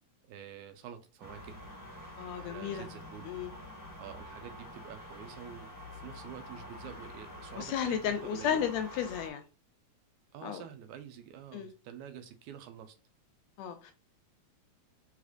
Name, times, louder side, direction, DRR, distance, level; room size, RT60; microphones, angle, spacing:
voice 1, 0.3-1.6 2.4-3.3 4.0-8.7 10.3-13.0, right 9 dB, 90° right, 2.0 m, -47 dB
sound 1, 1.2-9.3, left 1 dB, 10° left, 0.9 m, -47 dB
voice 2, 2.2-2.9 3.2-3.5 7.6-9.4 10.4-10.6 11.5-11.7 13.6-13.9, left 9 dB, 80° left, 1.7 m, -33 dB
4.9 x 3.6 x 2.5 m
omnidirectional pair, 3.4 m